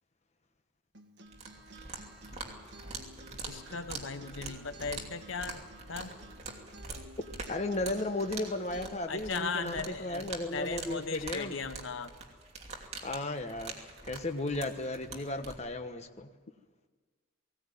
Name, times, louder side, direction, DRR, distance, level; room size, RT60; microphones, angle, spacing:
Acoustic guitar, 0.9-8.9, right 2 dB, 55° right, 1.6 m, -53 dB
sound 1, 1.3-15.6, right 3 dB, 30° right, 2.8 m, -45 dB
voice 1, 3.5-6.1 9.1-12.1, left 4 dB, 65° left, 10 dB, 1.0 m, -37 dB
voice 2, 7.5-11.6 13.0-16.3, left 2 dB, 30° left, 6 dB, 1.2 m, -35 dB
19.5 x 17.5 x 9.2 m, 1.4 s
head